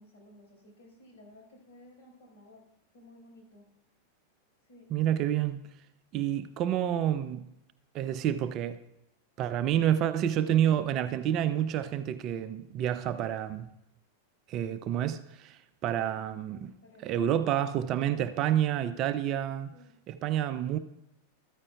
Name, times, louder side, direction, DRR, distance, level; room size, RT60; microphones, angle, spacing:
voice 1, 0.0-2.6 2.9-3.7 4.7-4.9 16.8-17.5 19.2-19.9, left 1 dB, 50° left, 4.7 m, -56 dB
voice 2, 4.9-5.7 6.1-7.4 7.9-8.8 9.4-13.7 14.5-16.7 17.0-19.7 20.1-20.8, right 10 dB, 35° right, 0.5 m, -29 dB
13.5 x 13.0 x 2.3 m
figure-of-eight pair, 90°, 0 cm